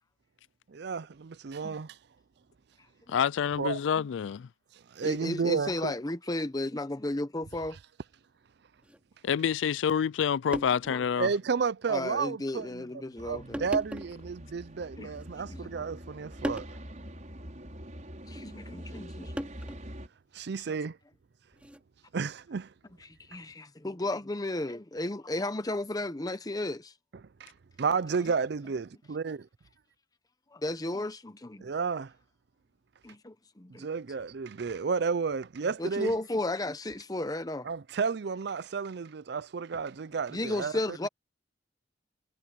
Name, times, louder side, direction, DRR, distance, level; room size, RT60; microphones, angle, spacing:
voice 1, 0.7-2.0 3.6-3.8 4.9-5.9 11.2-12.9 13.2-16.7 20.3-21.0 22.1-22.7 27.4-27.5 27.8-29.4 31.6-32.1 33.7-36.1 37.6-41.0, right 5 dB, 60° right, 0.5 m, -32 dB
voice 2, 3.1-4.5 9.2-11.3, left 7 dB, 80° left, 0.4 m, -27 dB
voice 3, 5.0-7.8 10.9-11.1 11.9-13.7 15.0-15.1 15.5-15.8 18.3-19.3 20.7-20.8 23.3-26.9 30.5-31.6 33.0-33.9 35.8-37.7 40.3-41.1, left 1 dB, 20° left, 0.8 m, -34 dB
sound 1, 8.8-9.0 10.1-10.2 10.5-11.0 11.6-11.7 12.6-12.8 13.5-14.2 15.1-15.7 16.4-16.8 18.3-18.5 19.4-20.0 21.5-21.8, equal, 5° right, 2.8 m, -38 dB
sound 2, 13.2-20.1, equal, 40° right, 6.1 m, -45 dB
head